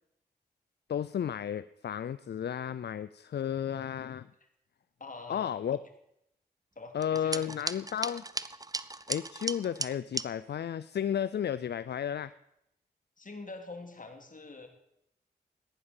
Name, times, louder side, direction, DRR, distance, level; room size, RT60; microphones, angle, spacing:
voice 1, 0.9-4.3 5.3-5.8 6.9-8.2 9.1-12.3, left 9 dB, 75° left, 16 dB, 0.5 m, -33 dB
voice 2, 5.0-5.8 6.7-7.4 13.2-14.7, left 3 dB, 50° left, 5 dB, 3.1 m, -45 dB
sound 1, 7.0-10.3, right 2 dB, 20° right, 0.7 m, -36 dB
15.0 x 10.5 x 7.2 m, 0.80 s
cardioid pair, 45°, 18 cm